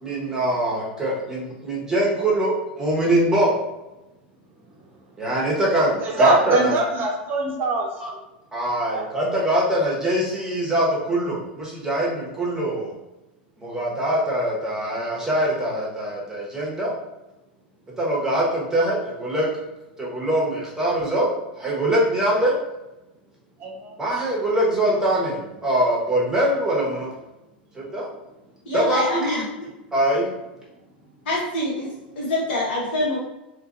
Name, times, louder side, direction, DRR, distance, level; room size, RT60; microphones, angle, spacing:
voice 1, 0.0-3.5 5.2-6.7 8.5-12.9 13.6-16.9 18.0-19.5 20.0-21.3 21.6-22.5 24.0-27.1 27.7-28.1 28.7-29.4 29.9-30.3, right 1 dB, 10° right, -4 dB, 1.1 m, -23 dB
voice 2, 6.0-7.9 8.9-9.1 23.6-23.9, right 2 dB, 40° right, 0 dB, 0.7 m, -22 dB
voice 3, 28.6-29.4 31.2-33.2, left 1 dB, 70° left, -6 dB, 1.4 m, -25 dB
2.7 x 2.5 x 2.6 m, 0.97 s
hypercardioid pair, 100°, 5 cm